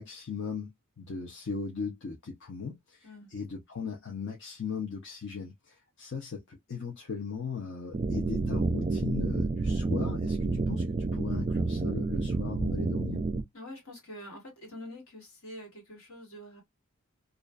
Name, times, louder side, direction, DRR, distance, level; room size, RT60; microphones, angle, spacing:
voice 1, 0.0-13.2, left 5 dB, 55° left, 0.6 m, -38 dB
sound 1, 7.9-13.4, right 3 dB, 30° right, 0.3 m, -29 dB
voice 2, 13.5-16.6, left 1 dB, 75° left, 1.6 m, -45 dB
2.4 x 2.3 x 2.2 m
head